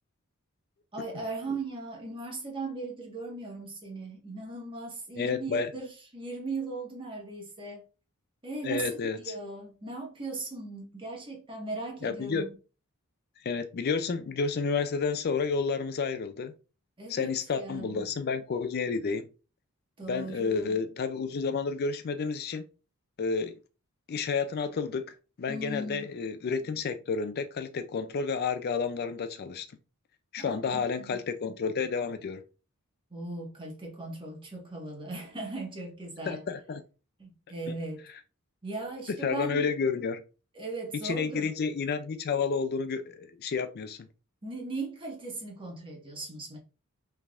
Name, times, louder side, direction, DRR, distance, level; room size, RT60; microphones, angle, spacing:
voice 1, 0.9-7.8 8.4-12.5 17.0-18.1 20.0-20.7 25.5-26.1 30.4-31.2 33.1-36.4 37.2-38.0 38.6-39.7 40.5-41.5 44.4-46.6, right 2 dB, 25° right, 1.3 m, -38 dB
voice 2, 5.2-5.7 8.6-9.3 12.0-12.5 13.4-16.5 17.1-19.3 20.1-22.6 23.2-23.5 24.1-29.7 30.3-32.4 36.3-36.8 39.1-40.2 41.0-44.0, left 5 dB, 45° left, 0.4 m, -30 dB
5.5 x 3.4 x 2.4 m
head